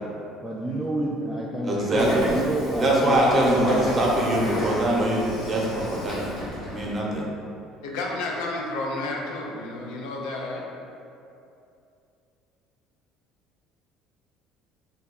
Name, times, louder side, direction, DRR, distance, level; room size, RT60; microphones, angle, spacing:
voice 1, 0.4-3.7, right 1 dB, ahead, -5 dB, 0.4 m, -28 dB
voice 2, 1.6-2.3 2.8-5.6 5.9-6.3 6.7-7.3, right 1 dB, 35° right, -3 dB, 0.8 m, -22 dB
Train / Sliding door, 1.9-7.0, equal, 65° left, 0.8 m, -35 dB
voice 3, 7.8-10.6, left 2 dB, 80° left, -1 dB, 0.4 m, -31 dB
2.7 x 2.2 x 3.8 m, 2.6 s
hypercardioid pair, 75°, 0 cm